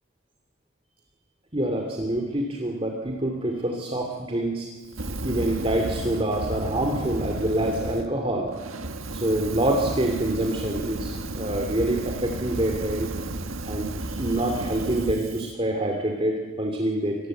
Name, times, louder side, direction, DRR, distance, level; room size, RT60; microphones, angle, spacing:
voice 1, 1.5-4.7 5.2-8.5 9.1-13.1 13.7-17.3, right 1 dB, 25° right, 2 dB, 2.7 m, -26 dB
Fire, 4.9-8.0 8.5-15.5, right 2 dB, 80° right, 1.5 m, -33 dB
26.0 x 19.5 x 7.9 m, 1.3 s
head